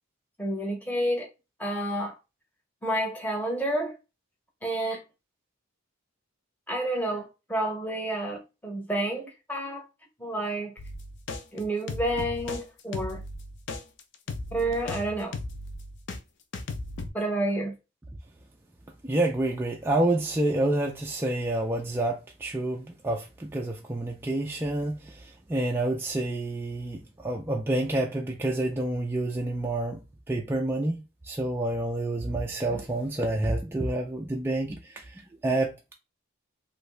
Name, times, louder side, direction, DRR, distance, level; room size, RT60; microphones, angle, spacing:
voice 1, 0.4-1.3 1.6-2.2 2.8-3.9 4.6-5.0 6.7-9.8 10.2-10.7 11.5-13.2 14.5-15.4 17.1-17.7, right 1 dB, 10° left, 0.8 m, -29 dB
sound 1, 10.8-16.2 16.5-17.1, left 2 dB, 55° left, 0.5 m, -36 dB
voice 2, 19.0-35.9, right 1 dB, 10° right, 0.3 m, -28 dB
2.8 x 2.5 x 3.2 m
head